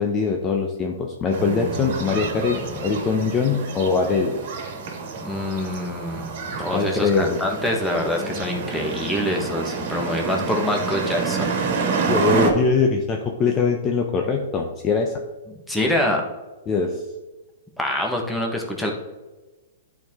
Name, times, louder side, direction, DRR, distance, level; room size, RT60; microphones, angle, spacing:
voice 1, 0.0-4.3 6.7-7.4 12.1-15.2 16.7-17.0, left 5 dB, 25° left, 2 dB, 0.7 m, -22 dB
sound 1, 1.3-12.5, right 5 dB, 55° right, 1.7 m, -28 dB
voice 2, 5.2-6.3 6.6-11.6 15.7-16.2 17.8-18.9, left 1 dB, 5° left, 0 dB, 1.3 m, -25 dB
10.5 x 4.7 x 3.7 m, 1.2 s
hypercardioid pair, 135°, 0 cm